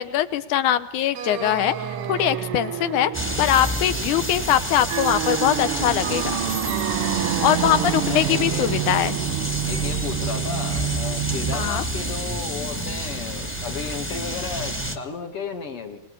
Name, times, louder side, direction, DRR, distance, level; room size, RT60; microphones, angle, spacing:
voice 1, 0.0-1.7 2.1-3.1 3.4-6.4 7.4-9.2 11.5-11.8, left 11 dB, 75° left, 14 dB, 2.5 m, -22 dB
sound 1, 1.1-11.6, right 12 dB, 65° right, 1.5 m, -28 dB
sound 2, 3.1-15.0, right 1 dB, 5° left, 0.9 m, -29 dB
voice 2, 7.4-8.7 9.7-16.0, left 5 dB, 50° left, 5 dB, 2.6 m, -34 dB
26.0 x 19.5 x 8.7 m, 0.90 s
omnidirectional pair, 3.7 m